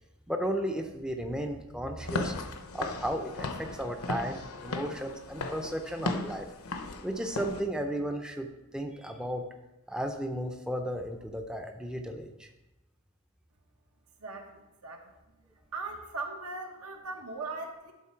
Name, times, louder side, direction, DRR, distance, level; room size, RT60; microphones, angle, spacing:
voice 1, 0.3-2.3 2.7-6.5 7.0-8.5 8.7-9.5 9.9-12.5, equal, 5° right, 4 dB, 0.4 m, -34 dB
Walk footsteps / Siren, 2.0-7.6, left 3 dB, 75° left, 0.7 m, -36 dB
voice 2, 14.2-15.0 15.7-17.9, right 3 dB, 85° right, 3 dB, 1.1 m, -39 dB
11.0 x 3.8 x 4.4 m, 1.0 s
head